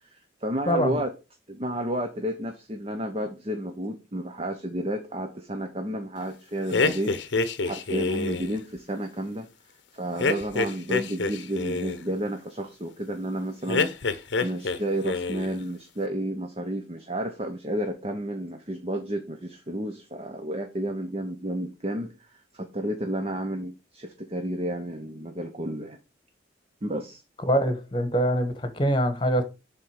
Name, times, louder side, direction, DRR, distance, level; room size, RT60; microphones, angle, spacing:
voice 1, 0.1-1.1 1.5-7.2 7.6-9.5 9.9-26.0 26.8-27.2, right 1 dB, 30° right, 0.8 m, -31 dB
voice 2, 0.7-1.0 27.4-29.4, equal, 25° left, 1.2 m, -24 dB
sound 1, 6.7-8.6 10.2-12.0 13.7-14.8 15.0-15.6, left 4 dB, 75° left, 0.8 m, -27 dB
7.3 x 3.8 x 6.3 m
head